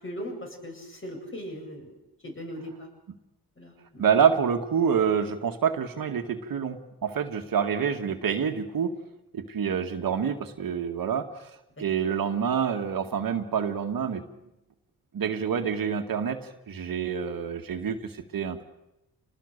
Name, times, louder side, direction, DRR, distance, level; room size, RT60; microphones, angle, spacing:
voice 1, 0.0-1.9 2.2-2.9 3.6-4.0 12.1-12.2, equal, 35° left, 2 dB, 7.7 m, -39 dB
voice 2, 4.0-8.9 9.3-11.5 11.8-14.2 15.1-18.6, right 7 dB, 65° right, 5 dB, 2.1 m, -27 dB
28.0 x 20.0 x 6.8 m, 0.92 s
cardioid pair, 85°, 37 cm